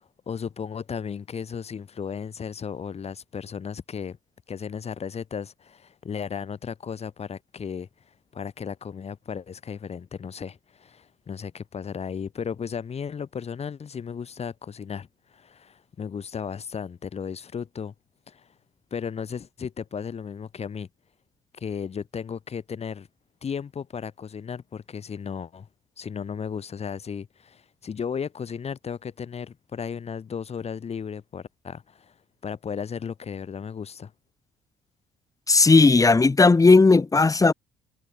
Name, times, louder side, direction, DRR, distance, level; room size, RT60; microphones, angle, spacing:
voice 1, 0.0-4.2 4.5-7.9 8.3-17.9 18.3-18.5 18.9-20.9 21.6-23.1 23.4-25.7 26.0-32.1 32.4-34.1, left 6 dB, 40° left, 3.7 m, -35 dB
voice 2, 35.5-37.5, left 3 dB, 20° left, 1.6 m, -16 dB
hypercardioid pair, 55°, 16 cm